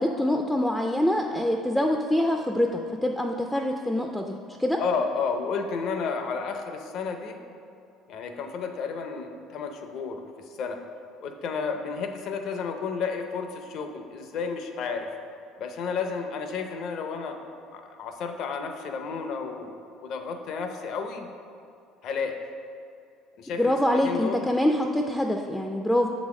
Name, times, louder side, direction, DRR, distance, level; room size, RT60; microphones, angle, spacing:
voice 1, 0.0-2.7 3.0-4.8 23.6-26.1, left 1 dB, 5° left, 3 dB, 0.3 m, -25 dB
voice 2, 4.8-7.4 8.1-10.8 11.2-15.1 15.6-17.4 17.7-21.3 22.0-22.4 23.4-24.5, left 5 dB, 55° left, 5 dB, 0.6 m, -32 dB
6.8 x 4.0 x 4.8 m, 2.4 s
cardioid pair, 125°, 0 cm